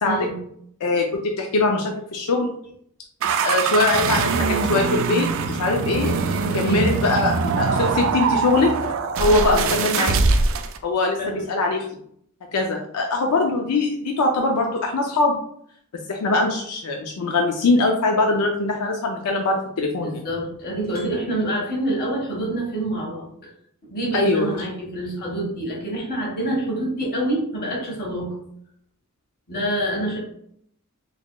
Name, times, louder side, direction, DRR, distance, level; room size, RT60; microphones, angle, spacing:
voice 1, 0.0-0.4 6.4-6.8 9.4-9.7 11.2-11.4 20.0-23.3 23.9-28.4 29.5-30.2, right 1 dB, 45° left, -3 dB, 1.4 m, -27 dB
voice 2, 1.4-2.5 3.4-6.1 6.5-8.7 9.2-10.2 10.8-11.2 11.5-11.8 12.5-15.4 16.1-20.3 24.1-24.5, left 2 dB, 85° left, 2 dB, 0.5 m, -22 dB
sound 1, 3.2-10.8, right 4 dB, 60° right, 0.3 m, -22 dB
4.1 x 2.9 x 2.3 m, 0.67 s
head